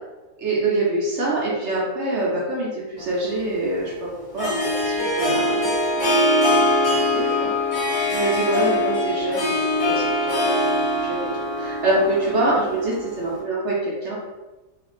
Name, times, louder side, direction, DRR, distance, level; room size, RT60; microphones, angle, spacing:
voice 1, 0.4-4.5 4.8-6.1 6.4-7.5 8.1-10.2 10.7-11.3 11.5-14.2, right 2 dB, 60° right, -5 dB, 0.7 m, -25 dB
Harp, 3.0-13.4, left 1 dB, 50° left, 0.7 m, -23 dB
2.4 x 2.4 x 3.0 m, 1.1 s
omnidirectional pair, 1.8 m